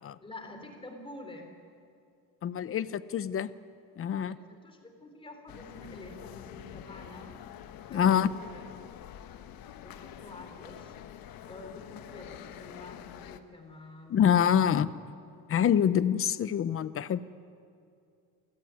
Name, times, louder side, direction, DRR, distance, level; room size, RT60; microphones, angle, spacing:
voice 1, 0.2-1.5 4.5-7.4 7.9-8.6 9.8-10.9 11.5-14.4, left 2 dB, 15° left, 4 dB, 3.5 m, -47 dB
voice 2, 2.4-3.5 4.0-4.4 7.9-8.3 14.1-14.9 15.5-17.2, left 9 dB, 35° left, 15 dB, 0.7 m, -25 dB
sound 1, 5.5-13.4, left 10 dB, 70° left, 1.3 m, -47 dB
28.5 x 15.0 x 9.4 m, 2.4 s
cardioid pair, 150°, 37 cm